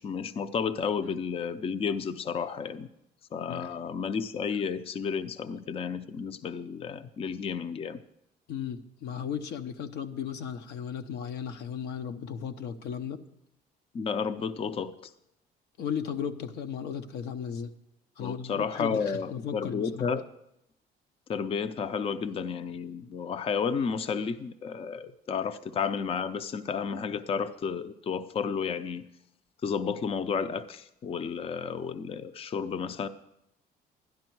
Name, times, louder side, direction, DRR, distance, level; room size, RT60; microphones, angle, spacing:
voice 1, 0.0-2.9 3.3-8.0 13.9-15.1 18.2-20.2 21.3-29.0 29.6-33.1, left 6 dB, 35° left, 12 dB, 0.5 m, -32 dB
voice 2, 8.5-13.2 15.8-17.7 18.2-20.1, left 8 dB, 80° left, 8 dB, 0.8 m, -35 dB
12.0 x 11.0 x 4.6 m, 0.82 s
cardioid pair, 110°, 17 cm